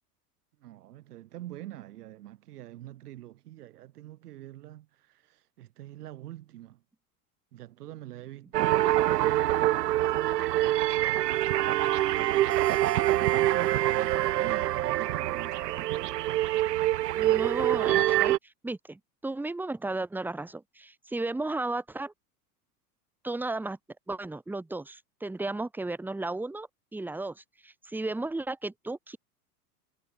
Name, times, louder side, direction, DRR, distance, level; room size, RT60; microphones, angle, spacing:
voice 1, 0.6-6.8 7.5-8.7 9.0-12.8 13.2-15.8, right 14 dB, 75° right, 4.8 m, -46 dB
sound 1, 8.5-18.4, right 14 dB, 90° right, 0.6 m, -25 dB
voice 2, 17.1-22.1 23.2-23.8 24.1-29.2, right 2 dB, 5° right, 0.9 m, -34 dB
hypercardioid pair, 95°, 47 cm